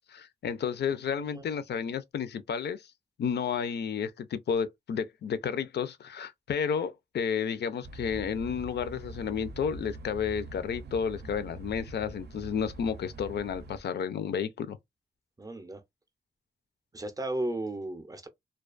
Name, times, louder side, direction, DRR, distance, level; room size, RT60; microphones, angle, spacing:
voice 1, 0.1-2.9 3.2-14.8, left 7 dB, 75° left, 0.4 m, -32 dB
voice 2, 1.1-1.4 15.4-15.8 16.9-18.3, right 1 dB, 20° right, 0.4 m, -35 dB
sound 1, 7.8-13.8, right 3 dB, 75° right, 0.5 m, -44 dB
2.3 x 2.3 x 2.4 m
wide cardioid pair, 170°, 17 cm